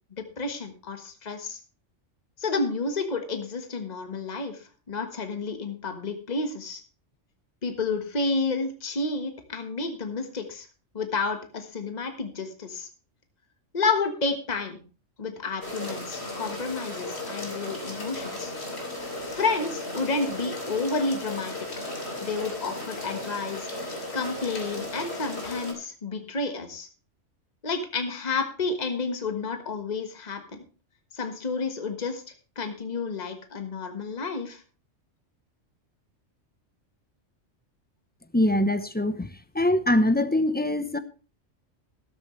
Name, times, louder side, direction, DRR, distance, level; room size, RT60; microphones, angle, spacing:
voice 1, 0.2-1.6 2.4-6.8 7.6-10.7 10.9-12.9 13.7-14.8 15.2-18.5 19.2-21.5 22.2-26.9 27.6-30.6 31.1-32.2 32.5-34.6, left 3 dB, 35° left, 6 dB, 1.5 m, -30 dB
sound 1, 15.6-25.7, left 1 dB, 60° left, 3.3 m, -35 dB
voice 2, 38.3-41.0, left 1 dB, 10° left, 10 dB, 0.6 m, -23 dB
13.5 x 12.5 x 3.2 m, 0.35 s
omnidirectional pair, 1.3 m